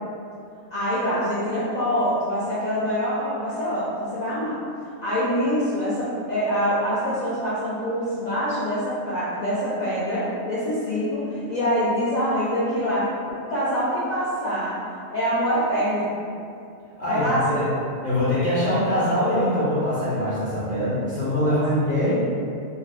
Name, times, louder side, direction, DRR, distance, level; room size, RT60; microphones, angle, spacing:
voice 1, 0.7-4.6 4.8-13.1 13.3-14.8 15.1-16.1 17.1-17.6 21.4-21.6, equal, 85° left, -10 dB, 0.3 m, -25 dB
voice 2, 17.0-17.7 18.0-22.2, left 1 dB, 45° left, -12 dB, 0.7 m, -23 dB
4.1 x 2.1 x 2.4 m, 2.5 s
omnidirectional pair, 1.4 m